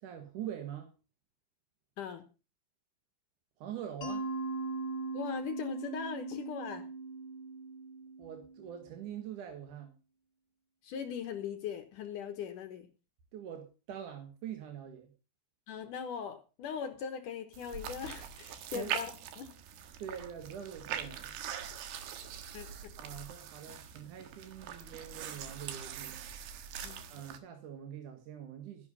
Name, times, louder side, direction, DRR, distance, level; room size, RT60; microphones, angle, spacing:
voice 1, 0.0-0.9 3.6-4.3 8.2-9.9 13.3-15.1 18.7-18.9 20.0-21.3 23.0-26.2 27.1-28.9, right 9 dB, 60° right, 5 dB, 2.6 m, -44 dB
Mallet percussion, 4.0-8.8, right 3 dB, 35° left, 2.3 m, -39 dB
voice 2, 5.1-6.9 10.8-12.9 15.7-19.5 22.5-22.9 26.8-27.0, left 7 dB, 65° left, 7 dB, 2.2 m, -40 dB
sound 1, 17.5-27.4, right 8 dB, 75° right, 3.4 m, -42 dB
14.0 x 10.5 x 5.5 m, 0.34 s
omnidirectional pair, 4.8 m